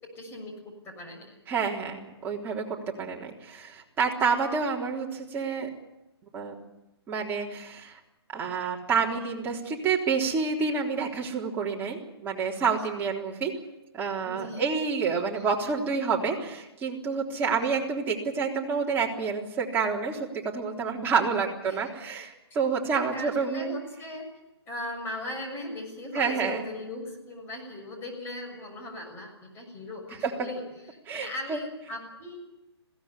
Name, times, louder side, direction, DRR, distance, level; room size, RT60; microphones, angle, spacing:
voice 1, 0.0-1.3 9.1-9.6 12.6-12.7 14.2-14.7 15.3-15.4 17.5-17.6 21.6-21.9 22.9-24.3 24.7-30.6 31.1-32.4, left 1 dB, 15° left, 2 dB, 6.8 m, -39 dB
voice 2, 1.5-5.7 6.3-6.5 7.1-8.0 8.3-13.5 13.9-23.7 26.1-26.6 30.2-30.3 31.1-31.6, right 5 dB, 15° right, -2 dB, 3.6 m, -28 dB
21.5 x 17.5 x 9.8 m, 0.95 s
hypercardioid pair, 150°, 14 cm